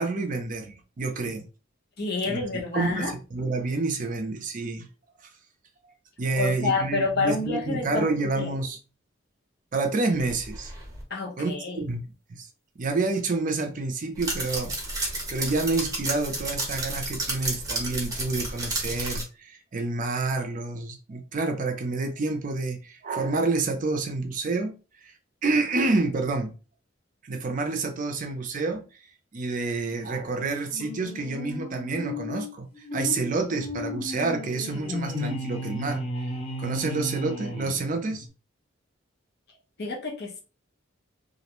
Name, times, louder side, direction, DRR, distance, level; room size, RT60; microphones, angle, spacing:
voice 1, 0.0-1.5 2.2-4.9 6.2-8.8 9.7-10.7 11.4-12.1 12.4-12.5 12.8-14.7 15.3-24.7 25.0-25.1 25.4-26.5 27.2-28.8 29.3-36.0 36.6-38.3, right 3 dB, 45° right, 0.5 m, -28 dB
voice 2, 2.0-3.1 6.3-8.5 11.1-11.8 39.8-40.4, left 3 dB, 55° left, 0.8 m, -28 dB
sound 1, 10.2-11.0 14.1-19.2, right 2 dB, 20° right, 1.0 m, -32 dB
sound 2, 30.7-38.3, left 1 dB, 30° left, 0.6 m, -34 dB
2.4 x 2.1 x 2.9 m
head